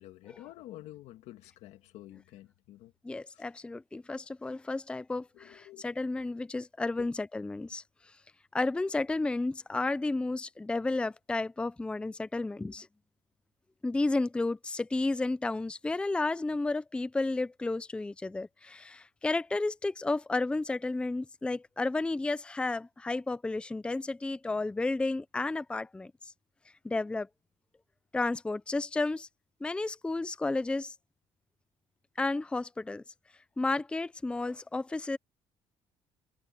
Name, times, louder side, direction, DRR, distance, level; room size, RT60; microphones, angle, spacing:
voice 1, 0.0-2.9 3.3-3.4 5.3-5.9 6.2-6.3 7.0-7.1, left 15 dB, 85° left, 1.7 m, -49 dB
voice 2, 3.0-7.8 8.5-12.9 13.8-26.3 26.8-27.3 28.1-29.3 29.6-30.9 32.2-33.0 33.6-35.2, left 2 dB, 10° left, 0.5 m, -32 dB
cardioid pair, 135°, 11 cm